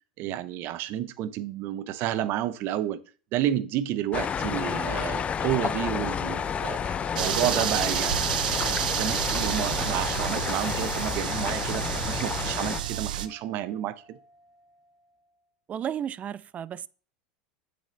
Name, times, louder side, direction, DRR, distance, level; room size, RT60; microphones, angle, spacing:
voice 1, 0.2-3.0 3.3-8.2 8.5-14.2, right 12 dB, 55° right, 0.8 m, -30 dB
sound 1, 4.1-12.8, left 7 dB, 30° left, 0.5 m, -30 dB
sound 2, 6.2-15.3, right 1 dB, 5° right, 2.4 m, -50 dB
sound 3, 7.2-13.3, right 11 dB, 85° right, 0.7 m, -30 dB
voice 2, 15.7-16.9, right 9 dB, 35° right, 0.4 m, -33 dB
8.1 x 6.7 x 3.3 m
hypercardioid pair, 100°, 4 cm